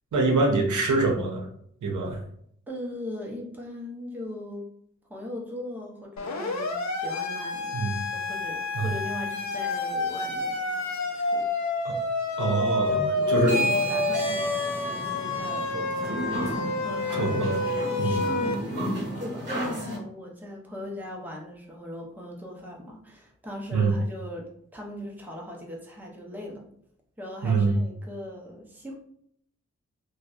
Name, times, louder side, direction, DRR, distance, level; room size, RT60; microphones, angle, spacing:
voice 1, 0.1-1.5 1.8-2.2 7.7-8.0 8.7-8.9 11.8-11.9 12.4-13.6 17.2-17.5 18.0-18.2 23.7-23.9 27.4-27.7, right 3 dB, 75° right, 1 dB, 0.6 m, -24 dB
voice 2, 2.7-4.7 5.1-6.7 7.0-7.8 8.1-10.6 11.1-11.5 12.8-24.5 24.7-26.7 27.2-28.9, left 1 dB, 5° right, -1 dB, 0.5 m, -39 dB
Siren, 6.2-18.5, left 2 dB, 65° left, 0.5 m, -29 dB
sound 1, 13.4-20.0, equal, 35° right, 1.5 m, -32 dB
2.6 x 2.1 x 2.3 m, 0.67 s
wide cardioid pair, 95°, 30 cm